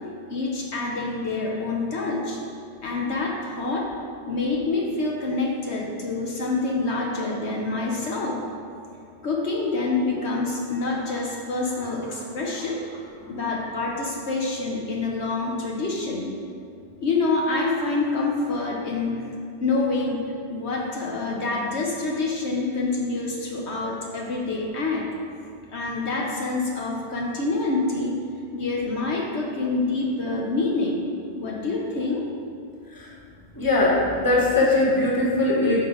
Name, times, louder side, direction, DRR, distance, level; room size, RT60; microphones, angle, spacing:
voice 1, 0.3-2.4 2.8-3.9 4.3-8.4 9.2-12.8 13.3-16.3 17.0-19.3 19.6-25.1 25.7-28.2 28.5-32.2, left 3 dB, 65° left, -1 dB, 1.1 m, -26 dB
voice 2, 33.6-35.8, left 2 dB, 15° left, -3 dB, 1.1 m, -20 dB
9.1 x 5.6 x 3.8 m, 2.4 s
omnidirectional pair, 1.3 m